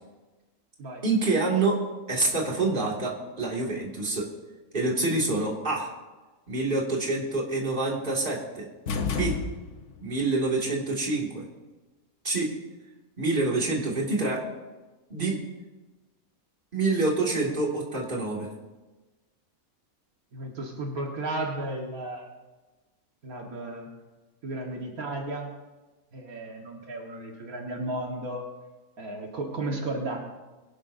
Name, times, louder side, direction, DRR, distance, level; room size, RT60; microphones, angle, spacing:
voice 1, 1.0-1.8 2.1-4.3 4.7-5.9 6.5-8.7 9.1-9.4 10.0-11.4 12.2-12.5 13.2-14.5 15.1-15.4 16.7-18.5, right 3 dB, 35° right, -3 dB, 2.5 m, -27 dB
sound 1, 8.9-10.1, left 5 dB, 55° left, 1.2 m, -30 dB
voice 2, 20.3-22.3 23.2-23.9 24.4-25.5 26.1-28.4 29.0-30.2, right 2 dB, 80° right, 0 dB, 2.1 m, -34 dB
22.0 x 11.5 x 2.7 m, 1.2 s
omnidirectional pair, 1.5 m